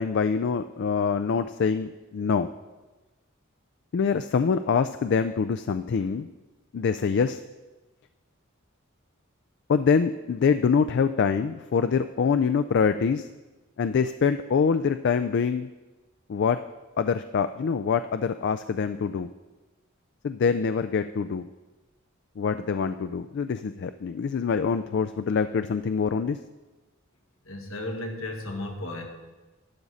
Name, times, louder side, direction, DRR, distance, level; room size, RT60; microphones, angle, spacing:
voice 1, 0.0-2.5 3.9-6.3 6.7-7.4 9.7-13.3 13.8-15.7 16.3-16.6 17.0-19.3 20.2-21.4 22.4-26.4, left 6 dB, 55° left, 10 dB, 0.3 m, -25 dB
voice 2, 27.5-29.0, left 1 dB, 75° left, 1 dB, 1.9 m, -34 dB
12.0 x 10.0 x 4.1 m, 1.2 s
head